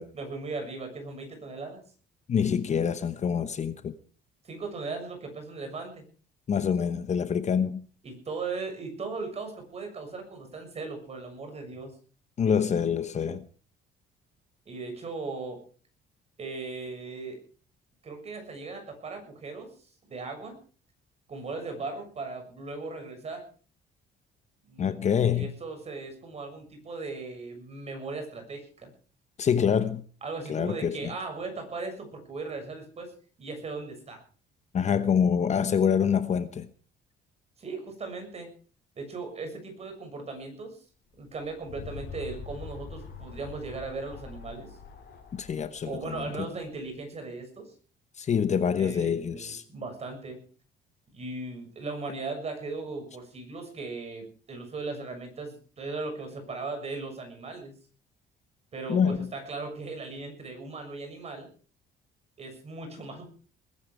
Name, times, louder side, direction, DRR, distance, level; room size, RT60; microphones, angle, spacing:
voice 1, 0.1-1.8 4.4-6.0 8.0-11.9 14.6-15.6 16.4-17.4 18.0-19.7 20.1-20.6 21.3-23.4 24.7-28.9 30.2-33.1 33.4-34.2 37.6-38.5 38.9-40.8 41.2-44.8 45.8-47.7 48.8-50.4 51.1-57.7 58.7-61.5 62.4-63.3, right 3 dB, 35° right, 6.8 m, -38 dB
voice 2, 2.3-4.0 6.5-7.8 12.4-13.4 24.8-25.5 29.4-30.0 30.5-31.1 34.7-36.7 45.3-46.3 48.2-49.6 58.9-59.3, left 7 dB, 35° left, 1.0 m, -26 dB
sound 1, 41.2-46.8, left 5 dB, 60° left, 6.0 m, -44 dB
20.5 x 12.0 x 4.9 m
cardioid pair, 140°, 19 cm